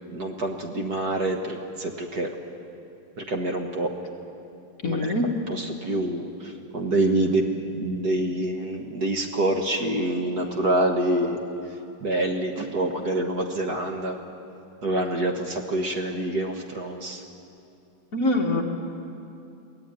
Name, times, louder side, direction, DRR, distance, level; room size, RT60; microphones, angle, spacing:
voice 1, 0.1-2.3 3.3-3.9 4.8-5.1 5.5-6.3 6.7-7.4 7.8-11.4 12.0-14.2 14.8-17.2, right 1 dB, 50° right, 3 dB, 1.8 m, -26 dB
voice 2, 4.8-5.3 18.1-18.6, left 2 dB, 40° left, 1 dB, 1.9 m, -23 dB
23.0 x 17.0 x 9.1 m, 2.6 s
omnidirectional pair, 2.4 m